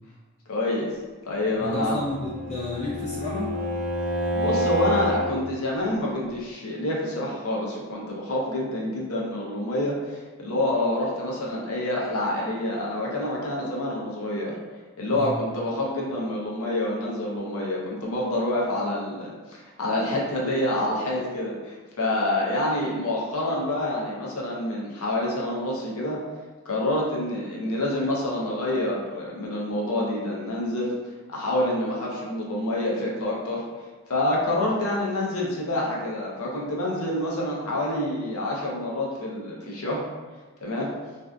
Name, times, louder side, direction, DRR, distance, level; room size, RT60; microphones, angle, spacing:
voice 1, 0.5-0.9 1.3-2.0 4.3-14.6 15.0-26.2 26.7-30.9 31.3-33.6 34.1-40.0 40.6-40.9, left 1 dB, 75° left, -3 dB, 0.6 m, -27 dB
voice 2, 1.6-3.5 15.1-15.4, left 2 dB, 30° left, -6 dB, 0.3 m, -31 dB
Bowed string instrument, 1.7-5.3, equal, 35° right, 0.8 m, -28 dB
2.5 x 2.4 x 2.2 m, 1.3 s
head